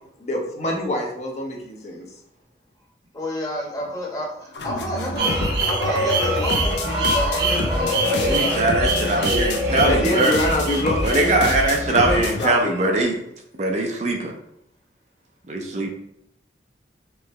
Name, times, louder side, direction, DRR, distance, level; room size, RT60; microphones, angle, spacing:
voice 1, 0.2-2.1 9.8-11.0 11.9-13.0, left 1 dB, 40° left, 0 dB, 0.8 m, -25 dB
voice 2, 3.1-5.3 5.6-8.6, left 1 dB, 20° left, -3 dB, 1.1 m, -30 dB
sound 1, 4.5-12.5, left 2 dB, 80° left, 0.6 m, -27 dB
sound 2, 5.2-13.0, right 1 dB, 65° right, 1.0 m, -25 dB
voice 3, 8.0-10.3 11.0-13.2 13.6-14.3 15.5-15.9, right 2 dB, 40° right, 2 dB, 0.5 m, -21 dB
4.7 x 3.2 x 3.1 m, 0.75 s
head